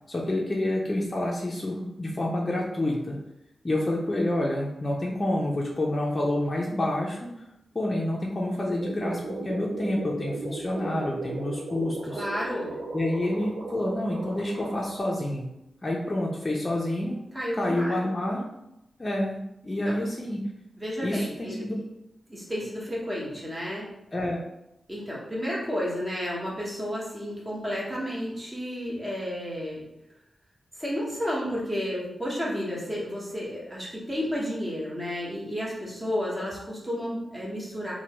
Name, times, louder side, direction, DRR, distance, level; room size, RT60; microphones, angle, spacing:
voice 1, 0.1-3.2 3.6-7.3 7.7-12.2 12.9-15.5 15.8-17.2 17.5-18.5 19.0-20.4 21.0-21.7 24.1-24.5, left 1 dB, 30° left, -3 dB, 0.4 m, -28 dB
sound 1, 8.8-15.0, right 3 dB, 85° right, 0.4 m, -36 dB
voice 2, 12.1-12.7 17.3-18.1 19.9-20.0 20.8-21.6 22.3-23.9 24.9-29.8 30.8-37.9, equal, 15° right, -5 dB, 1.1 m, -32 dB
3.0 x 2.1 x 2.9 m, 0.86 s
cardioid pair, 70°, 0 cm